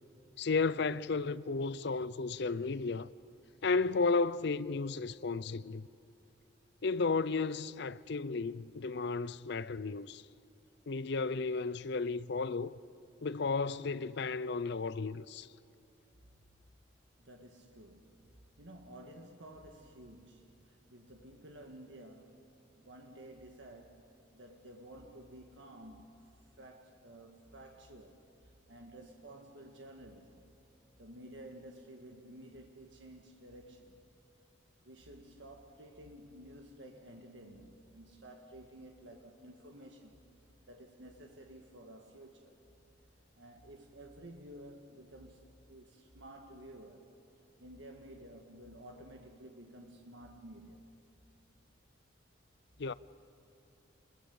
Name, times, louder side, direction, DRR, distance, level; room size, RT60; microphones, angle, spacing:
voice 1, 0.4-3.1 3.6-5.8 6.8-10.2 10.9-12.8 13.2-15.5 52.8-52.9, left 4 dB, 60° left, 0.5 m, -33 dB
voice 2, 17.2-22.6 22.8-24.1 24.3-28.2 28.7-30.5 31.0-34.0 34.8-40.2 40.7-42.6 43.4-47.1 47.6-50.8, right 1 dB, 70° right, 1.7 m, -53 dB
30.0 x 22.0 x 7.1 m
head